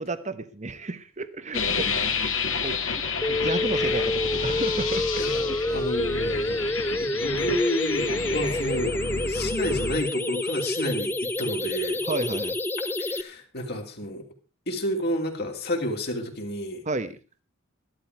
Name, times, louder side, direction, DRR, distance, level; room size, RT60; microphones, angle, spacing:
voice 1, 0.0-1.9 2.2-2.8 3.3-5.2 5.5-5.6 6.3-6.6 12.0-12.6 16.8-17.2, right 2 dB, 35° right, 12 dB, 1.1 m, -32 dB
sound 1, 1.5-10.0, left 5 dB, 80° left, 2.7 m, -30 dB
sound 2, 3.2-13.2, left 1 dB, 10° left, 0.6 m, -28 dB
voice 2, 5.2-12.0 13.0-14.2 14.7-16.8, left 1 dB, 50° left, 1 dB, 3.0 m, -30 dB
14.0 x 12.5 x 4.7 m, 0.34 s
head